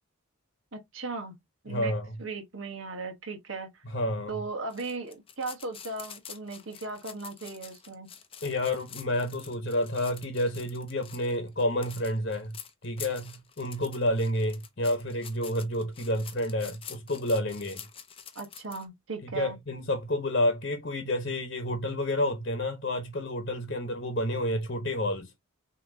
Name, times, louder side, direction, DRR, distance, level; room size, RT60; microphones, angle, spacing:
voice 1, 0.7-1.4 1.6-1.9 2.2-3.8 4.3-8.1 18.3-19.6, right 3 dB, 60° right, 1.3 m, -37 dB
voice 2, 1.7-2.1 3.9-4.4 8.4-12.6 12.8-17.8 19.3-25.3, left 1 dB, 45° left, 1.1 m, -29 dB
sound 1, 4.7-18.9, left 8 dB, 25° left, 0.6 m, -47 dB
6.4 x 3.0 x 2.7 m
head